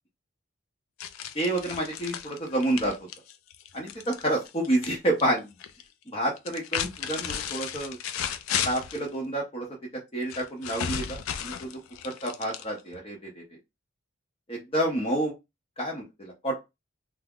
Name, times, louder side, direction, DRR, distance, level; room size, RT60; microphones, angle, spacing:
sound 1, 1.0-4.9 5.2-5.8 6.4-9.1 10.3-13.0, left 9 dB, 80° left, 0.3 m, -34 dB
voice 1, 1.3-2.9 3.7-5.5 6.1-8.0 8.6-9.7 10.1-13.4 14.5-15.3 15.8-16.6, right 1 dB, 25° left, -2 dB, 0.6 m, -29 dB
2.3 x 2.0 x 3.4 m, 0.22 s
head